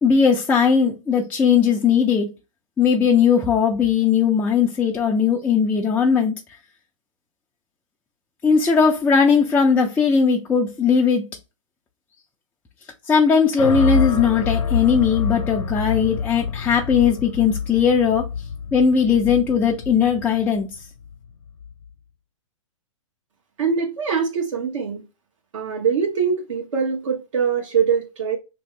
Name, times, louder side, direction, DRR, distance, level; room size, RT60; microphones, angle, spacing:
voice 1, 0.0-2.3 2.8-6.4 8.4-11.2 13.1-18.3 18.7-20.7, left 6 dB, 10° left, 0.4 m, -18 dB
sound 1, 13.6-21.8, left 6 dB, 70° left, 0.7 m, -27 dB
voice 2, 23.6-25.0 25.5-28.4, right 6 dB, 70° right, 1.0 m, -23 dB
2.8 x 2.6 x 3.2 m
hypercardioid pair, 115°, 17 cm